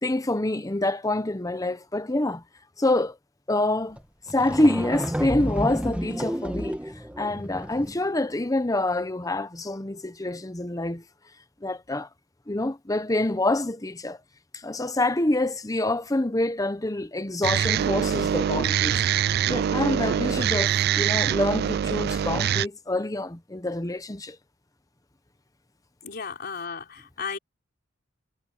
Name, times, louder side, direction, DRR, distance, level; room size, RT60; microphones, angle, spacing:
voice 1, 0.0-2.4 2.8-3.2 3.5-4.0 4.3-6.8 7.2-11.0 11.6-12.1 12.5-14.2 14.5-19.0 19.4-24.4, left 2 dB, 20° left, 0.9 m, -26 dB
sound 1, 4.0-4.1 4.3-8.1, equal, 5° right, 1.2 m, -31 dB
sound 2, 17.4-22.7, right 9 dB, 55° right, 0.3 m, -24 dB
voice 2, 26.0-27.4, left 5 dB, 55° left, 4.0 m, -34 dB
head